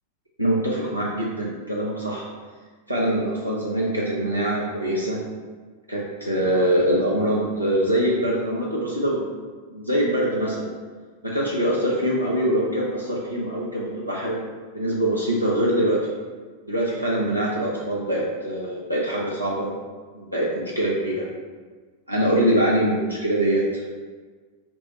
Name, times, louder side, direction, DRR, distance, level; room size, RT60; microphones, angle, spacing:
voice 1, 0.4-2.3 2.9-5.2 5.9-9.2 9.7-10.7 11.2-14.4 14.7-16.0 16.7-19.7 20.2-21.2 22.1-23.8, right 1 dB, 90° right, -5 dB, 0.5 m, -23 dB
4.5 x 2.0 x 4.0 m, 1.5 s
figure-of-eight pair, 90°, 0 cm